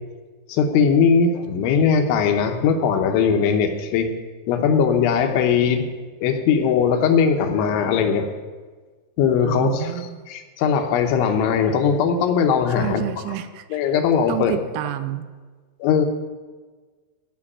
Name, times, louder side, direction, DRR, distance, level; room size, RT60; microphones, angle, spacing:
voice 1, 0.5-4.1 4.5-5.9 6.2-8.3 9.2-10.0 10.3-13.0 13.7-14.5 15.8-16.1, left 6 dB, 80° left, 5 dB, 3.3 m, -19 dB
voice 2, 9.4-10.2 12.8-13.8 14.3-15.2, right 13 dB, 85° right, 12 dB, 3.0 m, -29 dB
14.5 x 5.8 x 9.8 m, 1.4 s
omnidirectional pair, 5.5 m